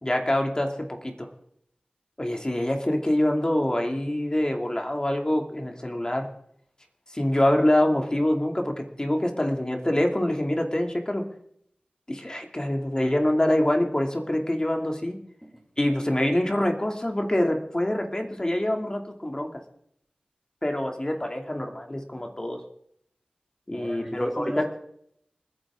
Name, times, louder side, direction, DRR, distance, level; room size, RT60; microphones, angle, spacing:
voice 1, 0.0-0.7 1.0-1.3 2.2-6.3 7.1-11.3 12.1-15.2 15.8-19.5 20.6-22.6 23.7-24.6, left 1 dB, 25° left, 3 dB, 2.5 m, -25 dB
voice 2, 23.7-24.6, equal, 5° right, 0 dB, 2.5 m, -36 dB
29.0 x 9.9 x 3.7 m, 0.71 s
cardioid pair, 40°, 3 cm